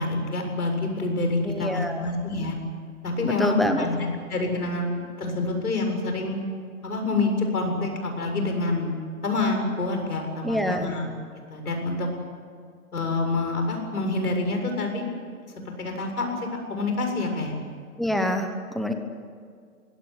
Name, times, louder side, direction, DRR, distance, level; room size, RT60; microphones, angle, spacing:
voice 1, 0.0-2.6 3.0-6.4 6.8-11.1 11.5-12.1 12.9-15.0 15.7-17.5, left 3 dB, 90° left, 4 dB, 7.6 m, -27 dB
voice 2, 1.4-2.0 3.2-3.9 10.4-10.9 18.0-18.9, equal, ahead, 6 dB, 1.0 m, -26 dB
23.0 x 18.0 x 9.8 m, 2.1 s
hypercardioid pair, 150°, 44 cm